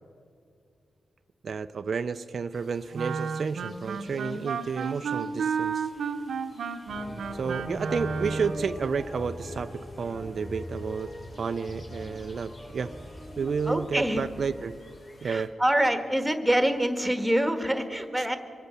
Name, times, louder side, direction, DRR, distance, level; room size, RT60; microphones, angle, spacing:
voice 1, 1.4-5.9 7.3-11.1 11.4-12.9 13.4-14.7 15.2-15.5 18.2-18.3, right 5 dB, 60° right, 10 dB, 0.4 m, -31 dB
sound 1, 2.5-15.5, left 2 dB, 50° left, 2.5 m, -57 dB
Wind instrument woodwind instrument, 2.9-8.7, right 5 dB, 80° right, 0.8 m, -32 dB
sound 2, 6.9-14.7, left 1 dB, 25° left, 4.9 m, -41 dB
voice 2, 13.7-14.2 15.2-18.4, right 1 dB, 5° right, 8 dB, 1.4 m, -25 dB
24.5 x 8.1 x 6.7 m, 2.4 s
cardioid pair, 90°, 0 cm